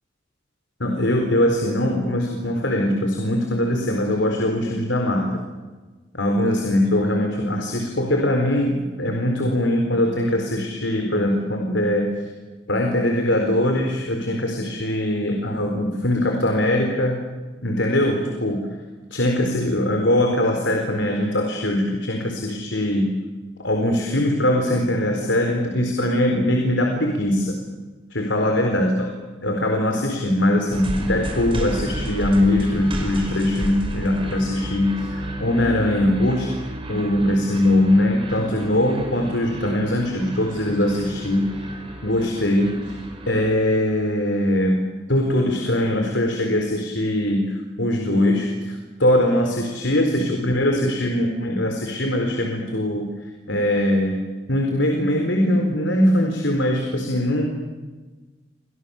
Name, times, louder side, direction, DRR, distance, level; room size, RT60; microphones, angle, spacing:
voice 1, 0.8-5.4 6.1-12.1 12.7-17.2 17.6-18.7 19.1-23.2 23.6-27.6 28.1-29.1 29.4-36.5 36.9-41.5 42.0-42.9 43.3-54.2 54.5-57.5, left 1 dB, 80° left, 2 dB, 4.3 m, -21 dB
sound 1, 30.7-43.5, right 1 dB, 30° right, 5.5 m, -33 dB
29.5 x 26.0 x 7.3 m, 1.3 s
head